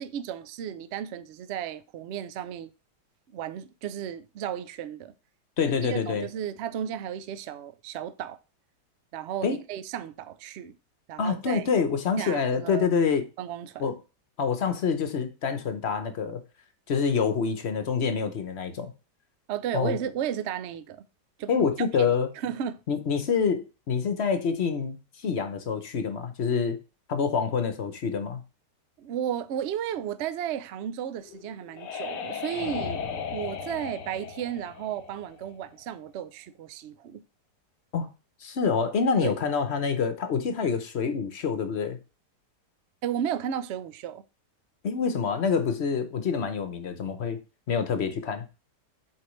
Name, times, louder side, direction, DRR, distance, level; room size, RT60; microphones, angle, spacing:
voice 1, 0.0-2.7 3.3-5.1 5.7-8.4 9.1-10.7 11.1-11.7 12.2-12.9 13.4-13.9 19.5-21.0 21.4-21.5 22.0-22.2 22.4-22.8 29.0-33.0 33.3-37.2 39.2-39.3 43.0-44.2, right 9 dB, 75° right, 0.6 m, -34 dB
voice 2, 5.6-6.3 9.4-9.6 11.2-13.2 13.8-14.0 14.4-16.4 16.9-18.9 19.7-20.0 21.5-22.3 22.9-26.8 27.1-28.4 37.9-38.1 38.4-42.0 44.8-47.4 47.7-48.5, left 6 dB, 50° left, 0.9 m, -26 dB
sound 1, 31.2-35.8, left 6 dB, 80° left, 1.4 m, -36 dB
7.4 x 4.6 x 3.1 m
omnidirectional pair, 1.8 m